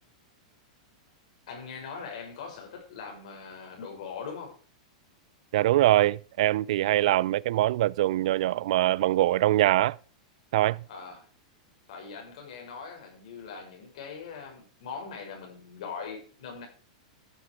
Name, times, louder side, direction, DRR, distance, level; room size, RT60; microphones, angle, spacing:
voice 1, 1.5-4.6 10.9-11.3 11.9-16.7, left 5 dB, 70° left, 6.4 m, -41 dB
voice 2, 5.5-10.0 10.5-10.8, right 15 dB, 65° right, 0.5 m, -23 dB
13.5 x 8.7 x 4.7 m
hypercardioid pair, 135°, 4 cm